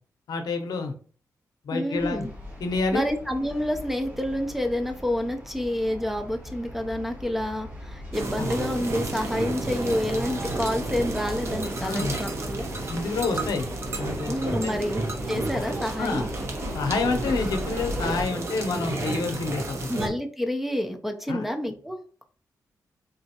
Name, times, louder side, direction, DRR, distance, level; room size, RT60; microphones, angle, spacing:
voice 1, 0.3-0.9 1.6-2.3 2.6-3.0 8.4-8.5 11.8-12.2 12.9-14.7 15.5-15.7 16.0-16.2 16.7-19.9 21.3-21.4, left 3 dB, 85° left, 5 dB, 0.6 m, -28 dB
voice 2, 1.7-2.3 2.9-12.7 14.2-16.3 19.9-22.2, left 1 dB, 5° right, 5 dB, 0.4 m, -28 dB
sound 1, 1.9-18.2, left 1 dB, 25° right, 1.4 m, -38 dB
sound 2, 8.1-20.1, right 2 dB, 45° right, 0.7 m, -32 dB
3.8 x 3.4 x 2.8 m, 0.43 s
wide cardioid pair, 170°, 7 cm